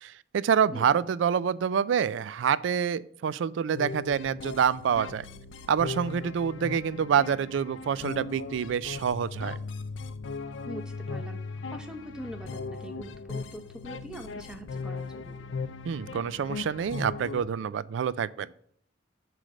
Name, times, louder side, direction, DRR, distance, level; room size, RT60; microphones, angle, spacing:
voice 1, 0.0-5.3 5.7-9.6 15.8-18.5, right 7 dB, 80° right, 18 dB, 0.3 m, -27 dB
sound 1, 3.7-17.4, left 4 dB, 85° left, 0.5 m, -38 dB
voice 2, 10.7-11.4 11.7-15.4, equal, 5° right, 4 dB, 0.7 m, -42 dB
7.7 x 3.3 x 6.3 m, 0.65 s
head